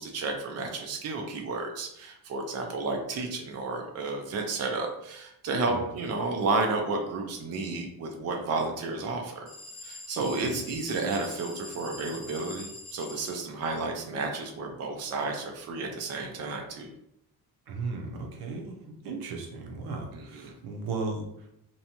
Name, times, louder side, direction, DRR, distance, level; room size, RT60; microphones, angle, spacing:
voice 1, 0.0-9.5 9.8-16.9 20.1-20.5, right 3 dB, 45° right, 2 dB, 0.5 m, -32 dB
sound 1, 9.5-13.4, left 2 dB, 90° left, 0.8 m, -44 dB
voice 2, 10.2-10.6 17.7-21.3, right 3 dB, 85° right, 2 dB, 0.7 m, -36 dB
2.7 x 2.2 x 2.8 m, 0.78 s
cardioid pair, 140°, 37 cm